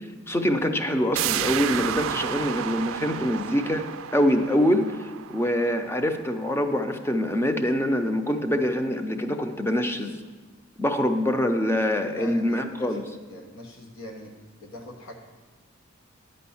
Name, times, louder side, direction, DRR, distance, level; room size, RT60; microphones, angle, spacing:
voice 1, 0.3-3.8 4.1-10.2 10.8-13.1, equal, 10° left, 6 dB, 0.6 m, -24 dB
sound 1, 1.2-6.6 7.0-7.1, right 10 dB, 85° right, 0.3 m, -32 dB
voice 2, 12.0-13.0 13.3-15.1, left 1 dB, 80° left, 2 dB, 1.0 m, -42 dB
9.8 x 5.2 x 7.0 m, 1.3 s
head